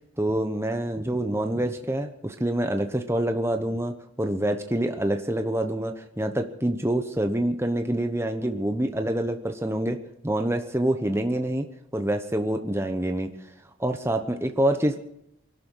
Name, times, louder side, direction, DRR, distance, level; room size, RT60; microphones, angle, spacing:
voice 1, 0.2-10.0 10.2-11.7 11.9-13.3 13.8-15.0, right 1 dB, 10° right, 6 dB, 1.0 m, -26 dB
23.5 x 12.0 x 4.7 m, 0.79 s
head